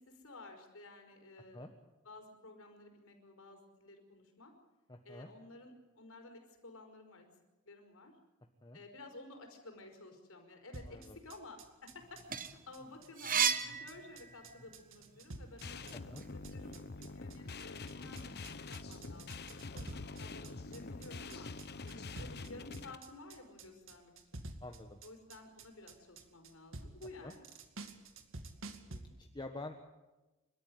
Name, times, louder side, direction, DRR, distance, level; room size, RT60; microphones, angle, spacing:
voice 1, 0.0-1.7 2.1-4.5 5.0-7.3 7.7-8.1 8.7-15.8 16.3-16.8 17.1-19.8 20.2-21.5 21.9-24.4 25.0-27.5, left 2 dB, 75° left, 4 dB, 5.3 m, -53 dB
voice 2, 4.9-5.3 8.6-8.8 10.8-11.2 15.9-16.3 18.0-18.1 19.7-19.9 22.2-22.4 24.6-25.0 27.2-27.3 28.9-29.9, left 2 dB, 20° left, 4 dB, 1.4 m, -48 dB
sound 1, 10.7-29.0, right 2 dB, 65° right, 2.3 m, -50 dB
sound 2, 12.0-14.7 15.2-16.6, right 7 dB, 40° right, 1.3 m, -35 dB
sound 3, 15.6-22.9, left 3 dB, 50° left, 1.0 m, -46 dB
29.0 x 13.5 x 9.5 m, 1.1 s
head